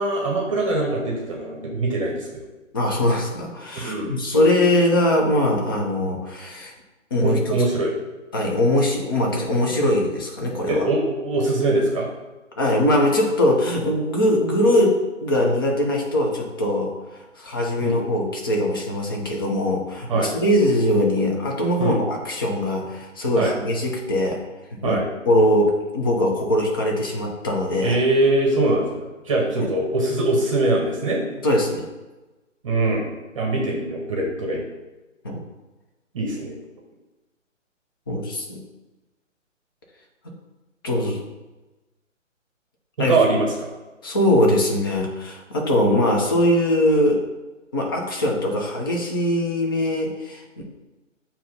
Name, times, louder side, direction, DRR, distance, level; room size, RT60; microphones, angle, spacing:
voice 1, 0.0-2.5 3.7-4.2 7.2-7.9 10.7-12.1 17.8-18.0 20.1-20.3 21.8-22.0 23.4-23.6 24.8-25.0 27.8-29.0 29.2-31.2 32.6-33.1 33.3-34.6 36.1-36.6 43.0-43.7, right 2 dB, 25° right, -1 dB, 1.0 m, -22 dB
voice 2, 2.7-6.7 7.1-7.6 8.3-10.9 12.6-24.4 24.8-25.0 25.3-28.0 29.6-29.7 31.4-31.9 35.2-35.4 38.1-38.6 40.2-40.3 40.8-41.2 43.0-43.2 44.0-47.2 47.7-50.6, left 1 dB, 20° left, 0 dB, 0.6 m, -21 dB
7.4 x 2.9 x 5.1 m, 1.1 s
figure-of-eight pair, 135°, 39 cm